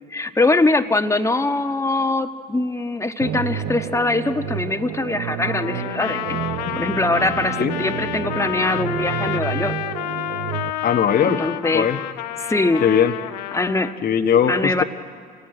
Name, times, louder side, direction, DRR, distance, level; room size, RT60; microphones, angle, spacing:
voice 1, 0.1-6.4 6.7-9.7 11.2-11.9 12.4-12.8 13.5-13.9 14.5-14.8, left 2 dB, 15° left, 7 dB, 1.4 m, -22 dB
sound 1, 3.2-10.7, right 10 dB, 65° right, 0.9 m, -30 dB
Trumpet, 5.4-13.9, left 14 dB, 85° left, 0.6 m, -30 dB
voice 2, 10.8-12.0 12.8-13.1 14.0-14.8, left 8 dB, 50° left, 4 dB, 1.2 m, -19 dB
27.5 x 18.0 x 9.0 m, 2.1 s
hypercardioid pair, 60°, 21 cm